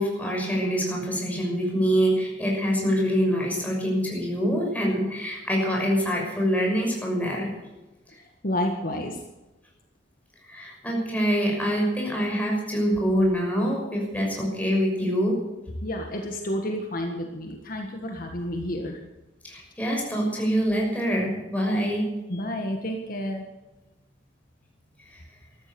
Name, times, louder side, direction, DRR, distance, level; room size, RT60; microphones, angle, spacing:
voice 1, 0.0-7.5 10.4-15.4 19.4-22.0 25.1-25.2, equal, 10° left, -2 dB, 6.3 m, -25 dB
voice 2, 8.4-9.2 15.8-19.0 22.3-23.4, left 1 dB, 50° left, 3 dB, 1.7 m, -30 dB
14.0 x 13.5 x 6.9 m, 1.1 s
head